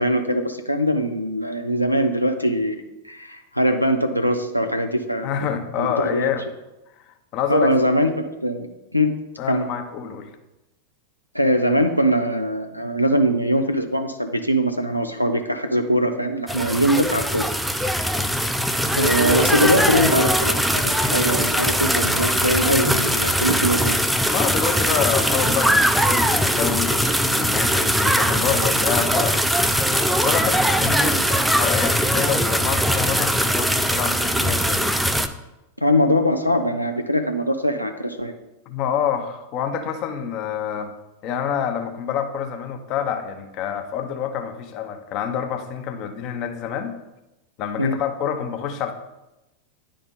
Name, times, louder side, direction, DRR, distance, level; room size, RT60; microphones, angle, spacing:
voice 1, 0.0-5.3 5.8-6.3 7.5-8.7 8.9-9.1 9.5-9.7 11.3-17.4 18.9-24.0 35.8-38.3 47.8-48.0, equal, 90° left, 5 dB, 0.5 m, -22 dB
voice 2, 5.2-6.4 7.3-7.8 9.4-10.3 18.0-18.3 24.3-29.5 30.2-34.9 38.7-40.9 41.2-46.9 47.6-48.9, left 8 dB, 40° left, 6 dB, 0.8 m, -27 dB
sound 1, 16.5-35.3, equal, ahead, 0.4 m, -21 dB
9.8 x 3.8 x 3.8 m, 0.96 s
figure-of-eight pair, 90°, 0 cm